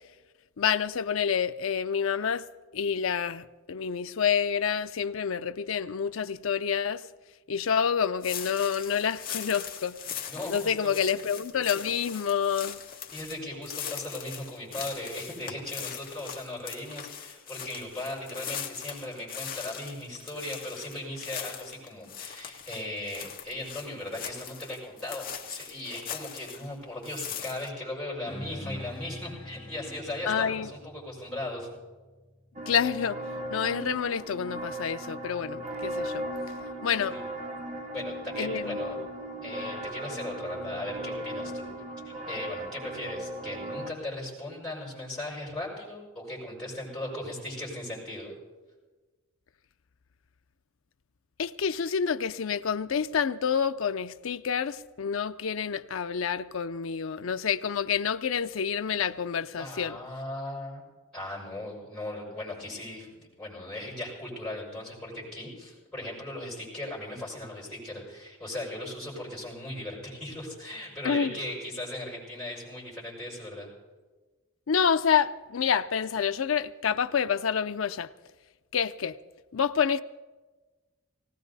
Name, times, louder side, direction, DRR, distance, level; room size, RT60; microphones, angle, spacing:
voice 1, 0.6-2.4 2.7-7.0 7.5-10.0 10.5-12.8 30.3-30.7 32.7-33.2 33.5-36.2 36.8-37.2 38.4-39.1 51.4-60.0 71.0-71.3 74.7-78.1 78.7-79.2 79.5-80.0, left 7 dB, 75° left, 0.5 m, -28 dB
sound 1, 8.2-26.7 27.0-27.7, left 9 dB, 40° left, 1.2 m, -40 dB
voice 2, 10.3-11.0 13.1-31.7 37.1-37.2 37.9-39.0 39.4-41.7 42.0-48.3 59.6-60.8 61.1-73.7, left 1 dB, 5° left, 6.3 m, -38 dB
sound 2, 28.2-33.0, left 1 dB, 20° left, 2.0 m, -44 dB
sound 3, 32.6-43.9, right 1 dB, 35° right, 1.3 m, -37 dB
19.0 x 18.0 x 4.1 m
head